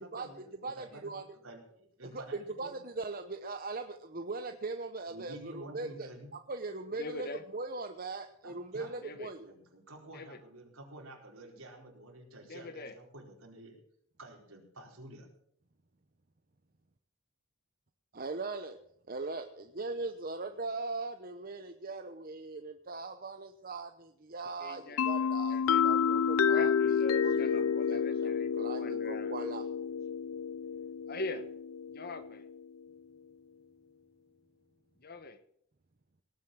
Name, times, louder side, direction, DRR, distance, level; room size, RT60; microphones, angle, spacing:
voice 1, 0.0-2.8 5.1-6.3 8.4-13.8 14.2-15.3, right 1 dB, 80° right, 0 dB, 4.5 m, -50 dB
voice 2, 0.6-1.2 2.1-6.1 6.5-7.3 7.5-9.5 18.1-18.8 19.1-29.6, right 3 dB, 40° right, 7 dB, 0.9 m, -40 dB
voice 3, 6.9-7.4 9.0-9.3 10.1-10.4 12.5-13.0 24.6-29.3 31.1-31.5 31.9-32.5 35.0-35.4, left 2 dB, 45° left, 11 dB, 1.3 m, -43 dB
sound 1, 25.0-32.6, left 7 dB, 80° left, 0.5 m, -30 dB
19.0 x 8.3 x 7.5 m, 0.68 s
head